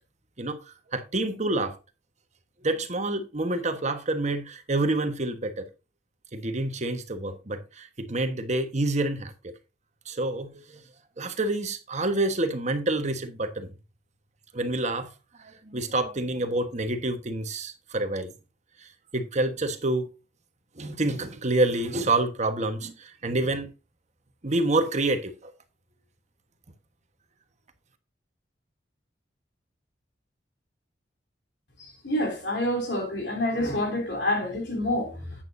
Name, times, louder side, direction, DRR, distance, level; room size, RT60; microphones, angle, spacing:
voice 1, 0.4-1.7 2.6-5.7 6.3-9.5 10.1-10.8 11.2-13.7 14.5-15.1 15.4-18.3 19.1-20.1 20.8-23.7 24.4-25.5, right 2 dB, 40° right, 1.3 m, -28 dB
voice 2, 31.8-35.4, left 1 dB, 70° left, 3.7 m, -28 dB
10.5 x 9.2 x 2.7 m
head